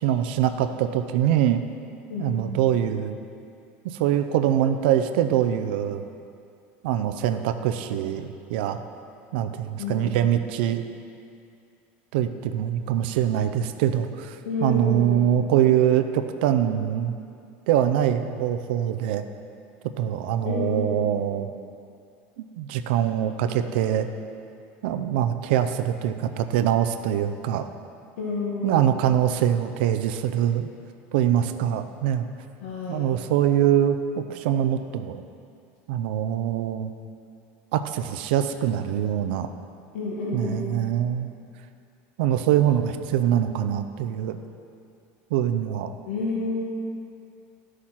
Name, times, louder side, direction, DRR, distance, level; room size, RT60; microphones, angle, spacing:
voice 1, 0.0-1.6 2.2-3.2 3.8-6.0 6.8-8.8 9.3-10.8 12.1-17.2 17.7-19.2 20.0-21.5 22.4-24.1 24.8-27.7 28.6-30.7 31.1-32.3 32.9-35.2 35.9-36.9 37.7-39.5 40.3-41.3 42.2-44.4 45.3-45.9, right 10 dB, 75° right, 8 dB, 0.6 m, -23 dB
voice 2, 2.1-2.6 9.8-10.1 14.4-15.3 20.4-21.2 28.2-28.8 32.6-33.1 39.9-40.8 46.1-46.6, left 3 dB, 85° left, -4 dB, 1.6 m, -30 dB
12.0 x 6.5 x 5.8 m, 2.4 s
cardioid pair, 170°, 6 cm